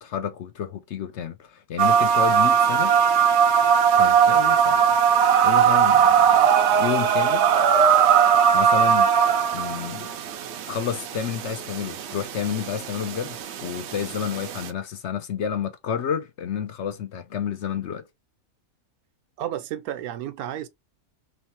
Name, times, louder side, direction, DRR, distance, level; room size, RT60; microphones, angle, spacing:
voice 1, 0.0-2.9 4.0-4.9 5.4-6.4 6.8-7.5 8.5-9.3 9.5-10.1 10.7-18.0, left 8 dB, 65° left, 0.8 m, -30 dB
sound 1, 1.8-14.7, right 8 dB, 65° right, 0.7 m, -20 dB
voice 2, 19.4-20.7, right 11 dB, 80° right, 1.1 m, -32 dB
3.1 x 3.1 x 4.3 m
omnidirectional pair, 1.5 m